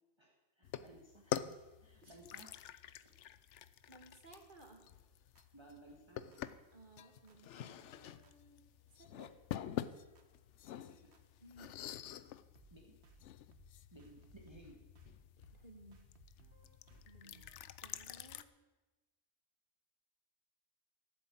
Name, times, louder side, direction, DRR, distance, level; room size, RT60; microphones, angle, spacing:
voice 1, 0.2-2.7 3.0-3.3 5.5-6.4 10.5-11.1 12.7-13.0 13.9-14.8, right 1 dB, 25° right, 0 dB, 1.7 m, -60 dB
sound 1, 0.6-18.4, left 11 dB, 80° left, 0.9 m, -47 dB
voice 2, 3.9-4.8 6.7-8.6 8.9-9.3 11.4-11.7 15.5-16.0 17.0-17.4 17.8-18.5, right 2 dB, 45° right, 3 dB, 2.0 m, -59 dB
sound 2, 5.4-5.5 6.3-6.4 7.3-7.4 8.2-8.3 9.2-9.3 10.2-10.3 11.1-11.2 12.1-12.2 12.6-12.8 13.0-13.3 13.5-13.7 14.0-14.7 15.0-15.2 15.4-15.7 15.9-17.8, right 4 dB, 70° right, 1.6 m, -65 dB
14.5 x 7.9 x 8.6 m, 1.1 s
omnidirectional pair, 1.2 m